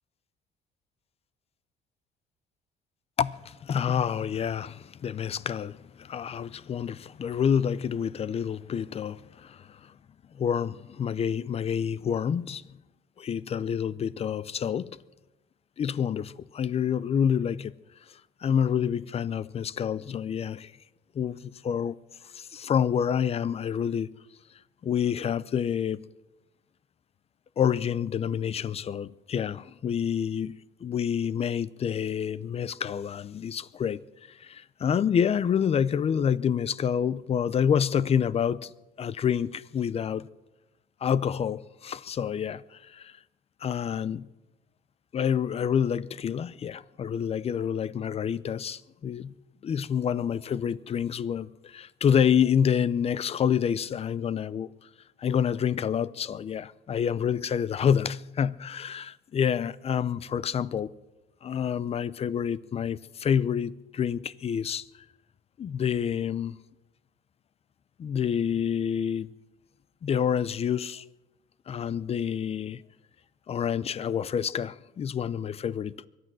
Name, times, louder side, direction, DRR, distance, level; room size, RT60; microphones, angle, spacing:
voice 1, 3.2-9.9 10.3-12.7 13.2-15.0 15.8-17.7 18.4-20.7 21.1-22.0 22.3-24.1 24.8-26.0 27.6-30.6 30.8-34.0 34.3-38.7 39.0-40.3 41.0-43.2 43.6-44.3 45.1-49.3 49.6-54.7 55.2-60.9 61.4-64.9 65.6-66.6 68.0-69.3 70.0-71.0 71.7-72.8 73.5-76.1, left 8 dB, 35° left, 0.6 m, -28 dB
23.5 x 9.5 x 6.2 m
cardioid pair, 110°, 17 cm